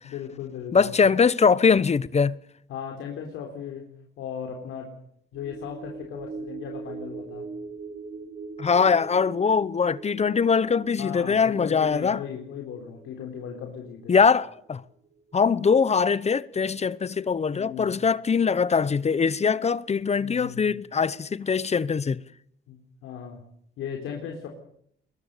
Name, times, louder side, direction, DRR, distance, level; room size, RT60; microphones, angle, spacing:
voice 1, 0.0-0.9 2.7-3.9 4.2-4.9 5.3-7.5 11.0-14.2 17.5-18.0 20.2-20.6 22.7-23.4 23.8-24.5, left 8 dB, 90° left, 3.7 m, -37 dB
voice 2, 0.7-2.4 8.6-12.2 14.1-14.8 15.3-22.2, left 5 dB, 35° left, 0.9 m, -22 dB
sound 1, 5.3-15.9 16.3-16.4, right 4 dB, 55° right, 4.0 m, -42 dB
22.0 x 21.5 x 6.8 m
cardioid pair, 90°, 20 cm